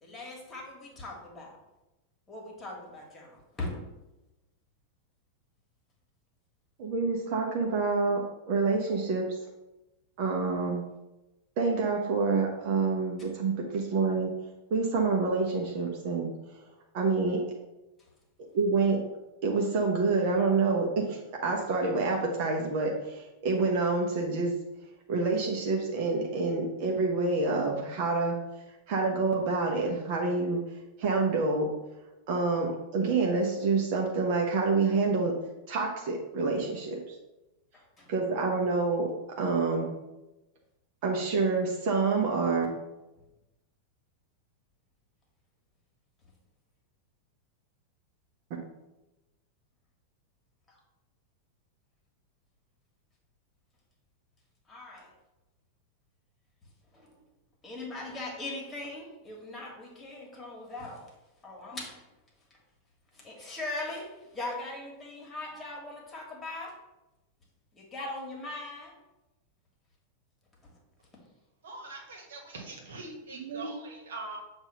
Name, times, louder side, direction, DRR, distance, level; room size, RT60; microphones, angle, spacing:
voice 1, 0.0-1.6 2.3-3.9 37.7-38.1 54.7-55.1 56.9-57.1 57.6-61.0 61.4-62.0 63.1-66.7 67.7-68.9 70.6-70.7, left 2 dB, 15° left, -1 dB, 1.7 m, -40 dB
voice 2, 6.8-9.4 10.2-10.8 11.6-14.3 14.7-16.3 16.9-17.4 18.4-19.0 19.4-24.5 25.1-28.3 28.9-30.6 31.0-31.7 32.3-35.4 35.7-37.0 38.1-39.1 39.4-39.9 41.0-42.7 73.3-73.7, right 4 dB, 45° right, 0 dB, 0.9 m, -27 dB
voice 3, 71.6-74.4, right 3 dB, 65° right, 1 dB, 1.4 m, -43 dB
7.3 x 2.7 x 5.4 m, 1.0 s
figure-of-eight pair, 90°, 0 cm